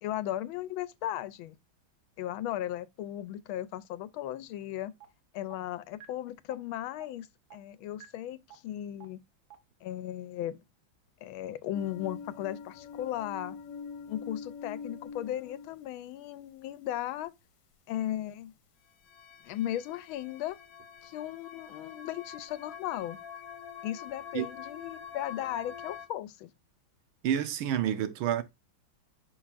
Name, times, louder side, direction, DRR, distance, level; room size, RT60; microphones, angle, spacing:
voice 1, 0.0-1.6 2.2-4.9 5.3-7.3 7.5-9.2 9.8-10.6 11.2-13.6 14.1-17.3 17.9-18.5 19.4-20.6 21.0-23.2 23.8-26.5, left 12 dB, 85° left, 1.4 m, -36 dB
sound 1, 5.0-5.1 5.5-5.6 6.0-6.1 6.5-6.6 7.0-7.1 7.5-7.6 8.0-8.1 8.5-8.6 9.0-9.1 9.5-9.6, right 12 dB, 50° right, 1.7 m, -48 dB
sound 2, 11.7-15.7 19.0-26.1, left 6 dB, 70° left, 1.4 m, -45 dB
voice 2, 27.2-28.4, right 10 dB, 85° right, 1.6 m, -29 dB
6.3 x 5.9 x 2.5 m
omnidirectional pair, 2.2 m